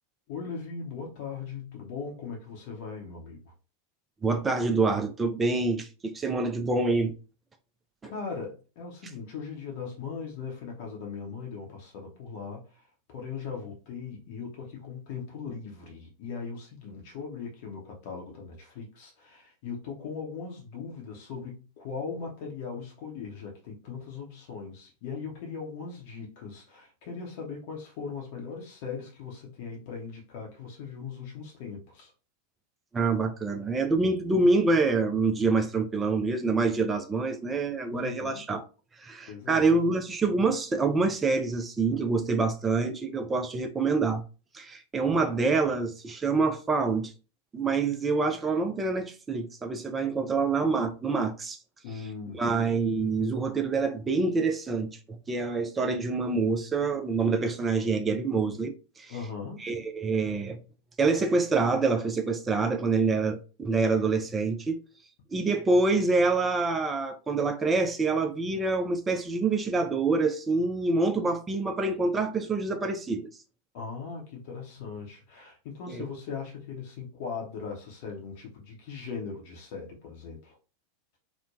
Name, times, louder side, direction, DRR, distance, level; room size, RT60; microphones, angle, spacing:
voice 1, 0.3-3.5 8.0-12.6 13.1-32.1 37.9-38.4 39.3-39.6 51.8-52.6 59.1-59.7 73.7-80.6, left 5 dB, 50° left, 0.7 m, -39 dB
voice 2, 4.2-7.1 32.9-38.6 39.0-44.2 44.5-47.1 47.5-51.6 52.3-59.2 59.6-60.6 61.0-64.8 65.3-73.3 75.9-76.0, right 3 dB, 15° right, 0.4 m, -26 dB
3.0 x 2.1 x 2.3 m
figure-of-eight pair, 90°, 0 cm